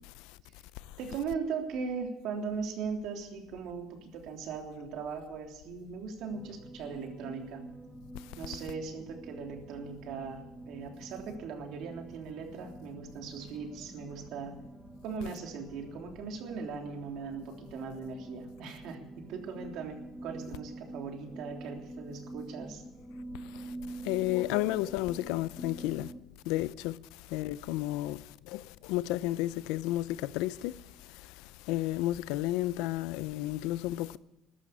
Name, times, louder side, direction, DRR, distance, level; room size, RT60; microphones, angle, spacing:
voice 1, 1.0-7.6 8.4-14.5 15.0-22.8, right 5 dB, 65° right, 3.4 m, -39 dB
sound 1, 6.3-26.2, right 2 dB, 5° right, 1.7 m, -47 dB
voice 2, 24.0-26.1 26.5-27.0 27.3-30.8 31.7-34.2, left 16 dB, 90° left, 0.6 m, -32 dB
14.5 x 11.5 x 8.6 m
cardioid pair, 130°, 0 cm